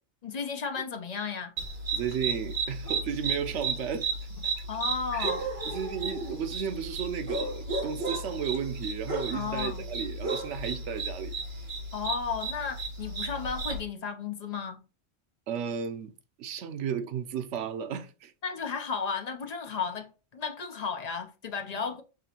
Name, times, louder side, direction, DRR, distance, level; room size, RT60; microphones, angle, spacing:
voice 1, 0.2-1.5 4.7-5.4 9.3-9.8 11.9-14.9 18.4-22.0, left 5 dB, 40° left, 0.7 m, -34 dB
sound 1, 1.6-13.8, right 3 dB, 45° right, 1.3 m, -34 dB
voice 2, 1.9-4.1 4.6-4.7 5.1-5.3 5.6-11.3 15.5-16.1 16.4-18.3, right 7 dB, 90° right, 1.0 m, -34 dB
6.1 x 3.0 x 2.8 m
omnidirectional pair, 1.2 m